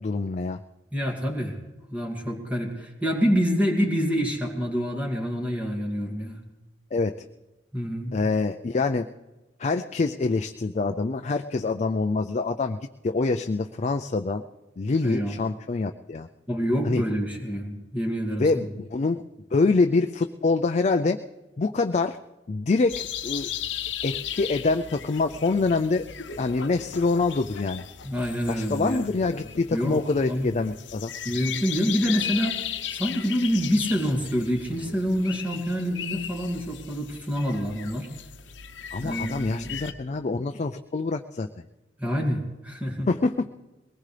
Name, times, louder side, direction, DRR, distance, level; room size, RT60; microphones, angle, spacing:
voice 1, 0.0-0.6 6.9-7.1 8.1-9.1 9.6-12.8 13.0-14.4 14.8-16.3 16.9-17.0 18.4-19.2 19.5-21.2 21.6-22.2 22.5-23.5 24.0-26.0 26.4-27.8 28.5-31.1 38.9-41.5 43.1-43.5, left 3 dB, 40° left, 5 dB, 0.4 m, -25 dB
voice 2, 0.9-1.6 1.9-6.4 7.7-8.2 15.0-15.4 16.5-18.7 28.0-29.1 29.7-30.5 31.2-32.6 32.9-38.1 39.0-39.7 42.0-43.1, equal, 10° right, 0 dB, 2.3 m, -27 dB
sound 1, 22.9-39.9, left 9 dB, 85° left, 0.8 m, -36 dB
21.5 x 19.0 x 3.3 m, 1.1 s
head